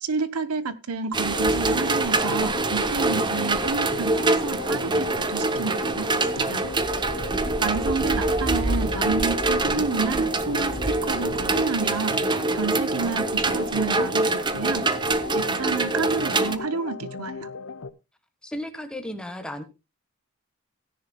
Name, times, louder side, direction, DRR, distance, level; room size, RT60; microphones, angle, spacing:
voice 1, 0.0-6.7 7.6-12.2 12.5-14.9 15.3-17.5, right 4 dB, 80° right, 13 dB, 0.9 m, -30 dB
sound 1, 1.1-16.6, right 2 dB, 20° right, 0.7 m, -25 dB
sound 2, 1.3-17.9, left 3 dB, 65° left, 0.9 m, -36 dB
voice 2, 18.4-19.6, left 1 dB, 5° left, 7 dB, 1.4 m, -34 dB
16.5 x 10.5 x 2.3 m, 0.25 s
head